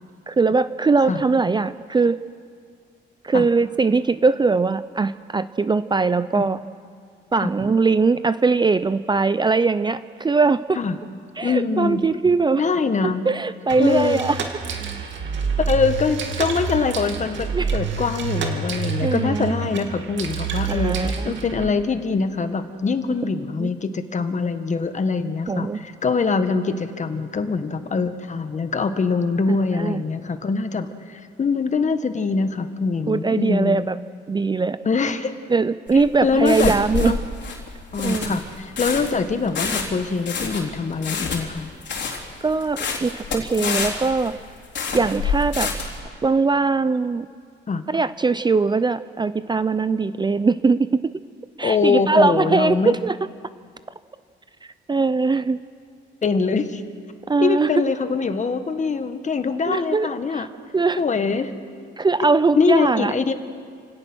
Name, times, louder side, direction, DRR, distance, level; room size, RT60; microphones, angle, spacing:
voice 1, 0.3-2.2 3.2-6.6 7.3-10.8 11.4-12.6 13.0-14.4 17.5-17.7 19.0-19.5 20.7-21.4 23.6-23.7 25.5-25.8 29.5-30.0 33.1-34.0 34.3-34.8 35.5-37.2 38.0-38.3 42.4-44.3 44.9-45.7 46.2-47.3 47.9-50.9 51.6-53.2 54.9-55.6 57.3-57.7 59.7-60.5 60.7-61.0 62.0-63.1, right 4 dB, 20° right, 14 dB, 0.6 m, -21 dB
voice 2, 11.4-12.0 12.6-13.2 13.8-14.2 15.6-33.8 34.8-35.3 36.2-36.7 37.0-37.2 37.9-41.7 43.6-43.8 47.7-47.8 51.6-52.9 56.2-56.8 57.4-60.5 61.0-61.5 62.6-63.3, left 4 dB, 35° left, 9 dB, 1.6 m, -23 dB
sound 1, 13.7-21.7, right 5 dB, 70° right, 2.6 m, -28 dB
sound 2, 35.9-46.0, left 5 dB, 65° left, 3.8 m, -28 dB
29.0 x 17.5 x 6.3 m, 2.2 s
cardioid pair, 90°, 20 cm